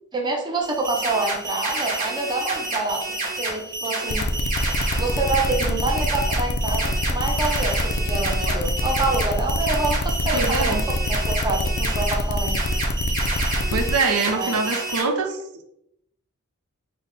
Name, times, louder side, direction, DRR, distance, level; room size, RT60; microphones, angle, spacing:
voice 1, 0.1-3.0 3.4-4.3 4.9-12.6 14.3-14.6 15.0-15.1, right 3 dB, 20° right, 0 dB, 0.5 m, -27 dB
sound 1, 0.6-15.0, right 2 dB, 40° right, 1.3 m, -29 dB
sound 2, 4.1-13.9, left 2 dB, 50° left, 0.4 m, -26 dB
voice 2, 10.3-10.8 13.7-15.4, right 4 dB, 85° right, 5 dB, 0.5 m, -23 dB
3.8 x 2.1 x 3.6 m, 0.77 s
head